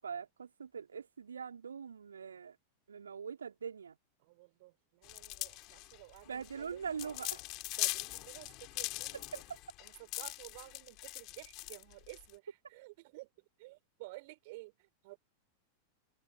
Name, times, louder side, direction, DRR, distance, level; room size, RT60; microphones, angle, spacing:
voice 1, 0.0-2.6 2.9-3.9 6.3-7.4 9.1-9.4, right 6 dB, 70° right, 3.1 m, -43 dB
voice 2, 4.2-6.9 7.8-9.1 9.8-15.2, right 22 dB, 50° right, 5.4 m, -53 dB
sound 1, 5.0-12.3, left 22 dB, 40° left, 5.0 m, -41 dB
open air
figure-of-eight pair, 90°, 0 cm